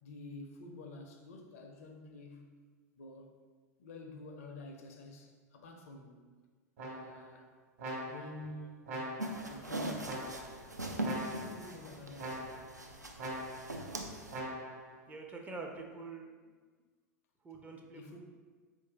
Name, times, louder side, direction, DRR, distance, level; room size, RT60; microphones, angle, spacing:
voice 1, 0.0-2.6 3.0-3.3 3.8-6.3 6.8-7.5 8.0-9.1 9.4-10.5 11.4-12.5 17.5-17.6 17.9-18.2, left 2 dB, 55° left, 0.5 m, -49 dB
sound 1, 6.8-7.3 7.8-8.4 8.9-9.5 10.0-10.6 11.0-11.7 12.2-12.8 13.2-13.8 14.3-14.9, right 1 dB, 55° right, 1.2 m, -42 dB
sound 2, 9.2-14.4, right 1 dB, 90° right, 0.4 m, -41 dB
voice 2, 15.1-16.3 17.4-18.2, right 3 dB, 15° right, 0.4 m, -45 dB
4.5 x 2.5 x 2.8 m
figure-of-eight pair, 90°, 9 cm